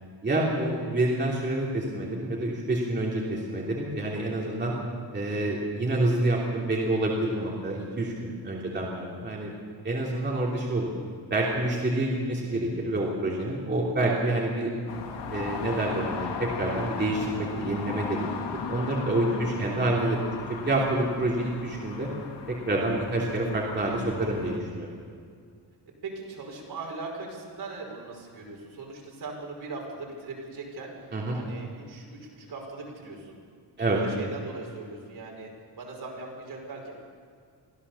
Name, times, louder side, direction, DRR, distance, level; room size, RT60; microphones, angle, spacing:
voice 1, 0.2-4.7 5.1-9.5 9.8-10.9 11.3-14.7 15.3-18.3 18.7-20.2 20.5-22.1 22.5-24.9 31.1-31.4 33.8-34.0, right 2 dB, 25° right, -4 dB, 3.1 m, -27 dB
voice 2, 8.7-9.2 18.4-18.7 19.2-19.8 26.0-30.9 31.3-32.1 32.4-33.4 33.8-35.5 35.8-36.9, right 3 dB, 60° right, -1 dB, 5.5 m, -40 dB
sound 1, 14.9-24.6, left 5 dB, 75° left, 2.2 m, -37 dB
24.5 x 15.5 x 7.1 m, 2.2 s
wide cardioid pair, 175°, 42 cm